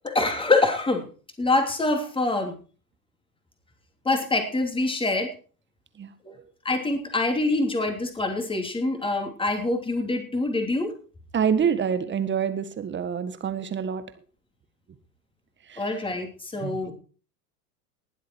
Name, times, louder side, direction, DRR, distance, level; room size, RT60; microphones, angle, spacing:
voice 1, 0.0-1.1 1.4-2.5 4.0-5.3 6.2-6.3 6.6-10.9 15.8-16.9, left 2 dB, 10° left, 5 dB, 3.1 m, -25 dB
voice 2, 11.3-14.0 15.7-15.8 16.6-16.9, right 7 dB, 25° right, 11 dB, 1.7 m, -26 dB
20.0 x 7.7 x 4.7 m, 0.39 s
hypercardioid pair, 105°, 48 cm